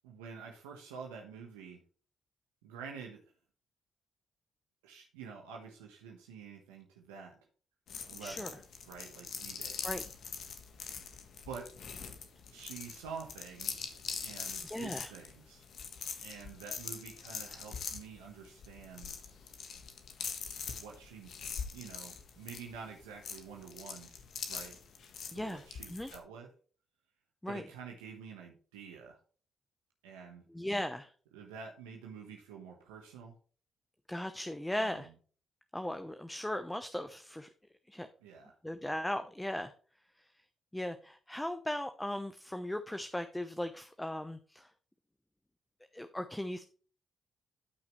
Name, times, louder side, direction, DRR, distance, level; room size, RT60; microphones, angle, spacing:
voice 1, 0.0-1.8 2.6-3.2 4.8-7.3 8.1-8.6 8.9-9.8 11.5-11.7 12.5-15.6 16.2-19.2 20.7-21.3 21.7-24.1 24.5-24.8 25.3-26.5 27.5-29.2 30.0-30.4 31.3-33.3 34.7-35.1 38.2-38.5, right 6 dB, 85° right, 0 dB, 1.2 m, -48 dB
sound 1, 7.9-26.2, left 6 dB, 65° left, 1.5 m, -43 dB
voice 2, 8.2-8.5 9.8-10.0 14.6-15.1 25.3-26.1 27.4-27.6 30.5-31.1 34.1-35.1 35.7-37.5 37.9-38.1 38.6-39.7 40.7-44.7 45.9-46.6, left 1 dB, 10° left, 9 dB, 0.9 m, -37 dB
12.5 x 6.0 x 3.2 m, 0.41 s
hypercardioid pair, 40°, 0 cm